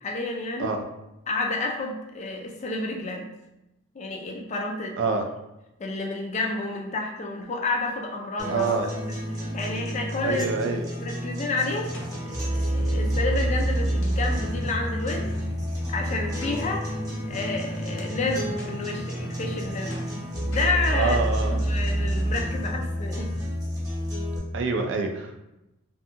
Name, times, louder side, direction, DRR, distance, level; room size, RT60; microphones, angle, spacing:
voice 1, 0.0-0.7 1.3-3.3 4.0-5.1 5.8-8.7 9.5-10.6 11.0-11.9 12.3-15.3 15.9-16.9 17.3-20.0 20.5-21.2 21.5-23.3, left 3 dB, 35° left, 1 dB, 0.3 m, -30 dB
sound 1, 8.4-24.4, equal, 15° right, 0.7 m, -29 dB
voice 2, 8.5-8.9 10.2-10.9 20.9-21.6 24.5-25.4, right 4 dB, 60° right, 4 dB, 0.3 m, -26 dB
sound 2, 11.8-22.5, left 1 dB, 65° left, 0.6 m, -41 dB
2.7 x 2.5 x 2.4 m, 0.93 s
head